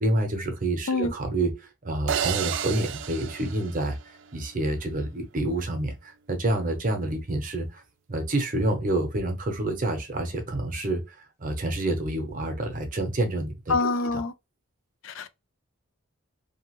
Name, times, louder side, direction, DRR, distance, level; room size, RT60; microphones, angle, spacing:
voice 1, 0.0-4.0 4.3-7.8 8.1-14.2, right 1 dB, 40° right, 0.8 m, -28 dB
sound 1, 2.1-4.4, right 8 dB, 60° right, 0.3 m, -31 dB
voice 2, 13.7-14.3 15.0-15.3, left 3 dB, 70° left, 0.4 m, -26 dB
2.8 x 2.4 x 2.9 m
head